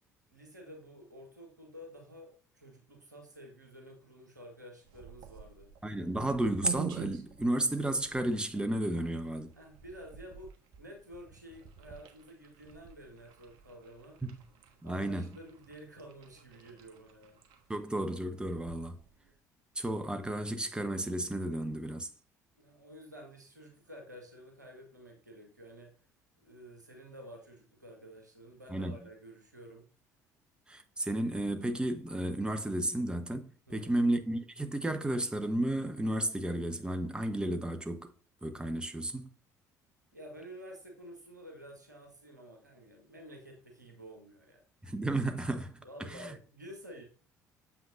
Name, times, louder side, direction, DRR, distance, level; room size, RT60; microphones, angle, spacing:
voice 1, 0.3-2.3 2.5-5.7 9.0-9.1 9.5-10.5 10.8-14.2 14.8-17.4 22.6-25.9 26.4-29.9 33.7-34.0 40.1-44.6 45.8-47.0, equal, 90° right, 1.4 m, -51 dB
sound 1, 4.8-19.4, right 10 dB, 60° right, 1.3 m, -48 dB
voice 2, 5.8-9.5 14.2-14.3 14.8-15.3 17.7-19.0 19.8-22.1 28.7-29.0 30.7-38.1 38.4-39.3 44.8-46.3, right 1 dB, 10° right, 1.1 m, -33 dB
7.2 x 6.0 x 2.6 m
figure-of-eight pair, 55°, 9 cm